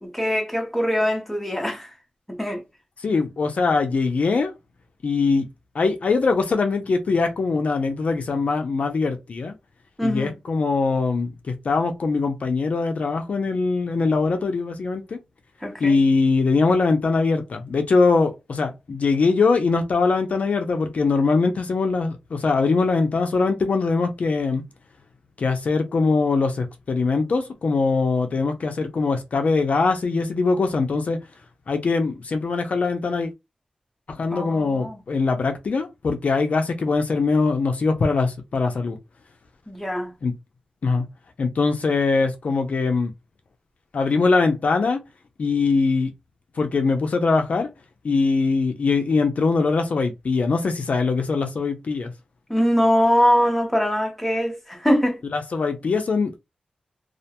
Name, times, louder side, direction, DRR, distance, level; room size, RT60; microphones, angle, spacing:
voice 1, 0.0-2.0 2.3-2.6 10.0-10.3 15.6-16.0 34.3-35.0 39.7-40.1 52.5-55.2, equal, 5° left, 0.7 m, -22 dB
voice 2, 3.0-4.5 5.0-5.5 5.7-9.5 10.0-15.2 15.8-24.6 25.4-31.2 31.7-33.3 34.1-39.0 40.2-40.3 40.8-41.0 41.4-43.1 43.9-45.0 45.4-46.1 46.6-47.7 48.0-52.1 55.3-56.4, left 4 dB, 60° left, 0.4 m, -22 dB
2.3 x 2.1 x 2.8 m
wide cardioid pair, 115°, 3 cm